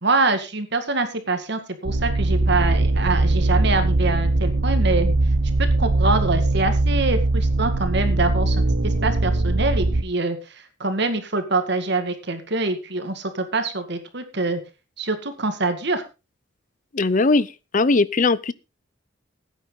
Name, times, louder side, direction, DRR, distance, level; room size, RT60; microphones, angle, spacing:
voice 1, 0.0-5.1 5.6-10.4 10.8-14.6 15.0-16.0, right 3 dB, 55° right, 8 dB, 2.0 m, -25 dB
sound 1, 1.8-10.0, right 2 dB, 75° right, 1.1 m, -21 dB
voice 2, 16.9-18.5, left 3 dB, 40° left, 18 dB, 0.6 m, -20 dB
16.0 x 9.2 x 3.9 m, 0.29 s
head